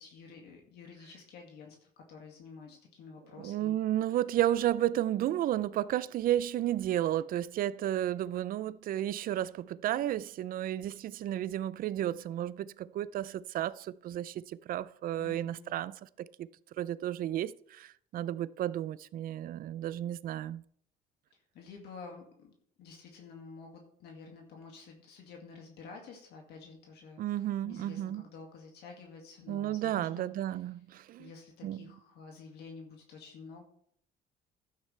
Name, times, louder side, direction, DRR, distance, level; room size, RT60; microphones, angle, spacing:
voice 1, 0.0-3.8 15.2-15.7 21.3-22.5 22.8-30.3 31.2-33.6, left 4 dB, 75° left, 2.1 m, -50 dB
voice 2, 3.4-16.5 16.8-20.6 27.2-28.2 29.5-31.3 31.6-31.8, right 12 dB, 55° right, 0.4 m, -32 dB
12.0 x 9.7 x 3.3 m
cardioid pair, 110°, 17 cm